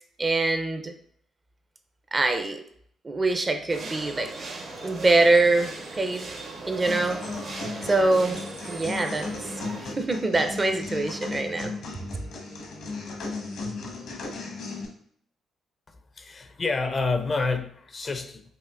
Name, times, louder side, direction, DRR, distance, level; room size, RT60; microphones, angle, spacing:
voice 1, 0.2-0.9 2.1-2.6 3.0-4.3 4.8-5.7 6.0-6.3 6.7-7.2 7.8-8.4 8.7-9.5 9.8-11.7, right 2 dB, 25° right, 6 dB, 0.5 m, -24 dB
sound 1, 3.7-9.8, right 3 dB, 55° right, 0.9 m, -38 dB
sound 2, 6.9-14.9, left 3 dB, 75° left, 1.0 m, -36 dB
voice 2, 16.2-18.4, left 3 dB, 35° left, 7 dB, 0.5 m, -28 dB
5.6 x 2.5 x 2.5 m, 0.63 s
cardioid pair, 90°, 0 cm